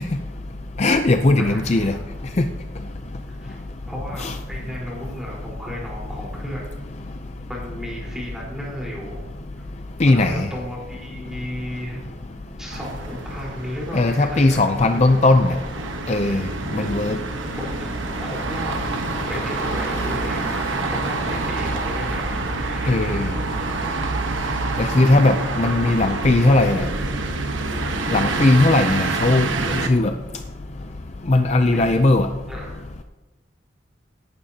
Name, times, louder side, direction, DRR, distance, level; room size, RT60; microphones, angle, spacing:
voice 1, 0.8-1.9 2.4-2.5 4.2-4.3 10.0-10.5 13.9-15.5 16.1-16.5 16.7-17.2 22.9-23.3 24.8-26.8 28.1-30.1 31.3-32.3, left 2 dB, 35° left, 7 dB, 0.5 m, -18 dB
voice 2, 1.4-2.1 3.3-3.6 3.9-6.7 7.5-9.2 10.1-12.1 12.6-14.7 15.1-15.2 15.5-15.7 17.6-18.8 19.3-23.2 25.2-27.3 31.7-31.9 32.5-32.8, equal, 5° right, -5 dB, 4.2 m, -34 dB
sound 1, 11.0-29.7, equal, 15° left, 1.7 m, -41 dB
sound 2, 12.7-29.9, right 3 dB, 80° right, 1.2 m, -27 dB
17.5 x 11.5 x 2.9 m, 1.1 s
head